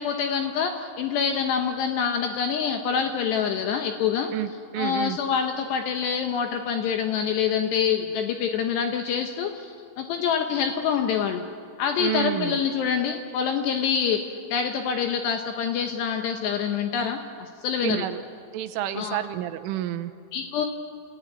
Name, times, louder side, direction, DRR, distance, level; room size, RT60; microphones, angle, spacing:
voice 1, 0.0-4.3 4.8-11.4 11.8-18.1 18.9-19.2 20.3-20.7, left 7 dB, 75° left, 5 dB, 2.7 m, -26 dB
voice 2, 4.3-5.2 12.0-12.6 17.8-18.2 18.5-20.1, right 12 dB, 80° right, 10 dB, 3.3 m, -29 dB
28.5 x 15.5 x 9.9 m, 2.2 s
omnidirectional pair, 5.8 m